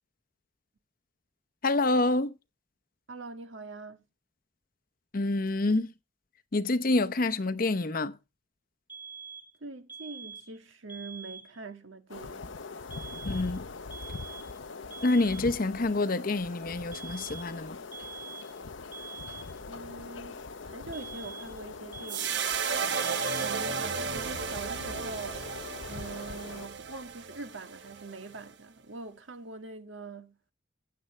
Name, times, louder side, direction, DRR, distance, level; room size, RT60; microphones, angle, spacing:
voice 1, 1.6-2.3 5.1-5.9 6.5-8.1 13.3-13.7 15.0-17.8, left 2 dB, 45° left, 0.8 m, -27 dB
voice 2, 3.1-4.0 9.6-12.6 13.0-13.3 19.6-22.4 23.4-30.3, right 3 dB, 85° right, 1.7 m, -43 dB
sound 1, 8.9-9.6 9.9-10.6 10.9-11.6 12.9-13.6 13.9-14.6 14.9-15.6 16.9-17.6 17.9-18.6 18.9-19.6 20.9-21.6 21.9-22.6 22.9-23.6, right 5 dB, 10° right, 1.3 m, -45 dB
sound 2, 12.1-26.7, left 4 dB, 80° left, 0.8 m, -42 dB
sound 3, 22.1-28.5, right 6 dB, 65° right, 1.1 m, -34 dB
15.5 x 9.5 x 3.2 m
head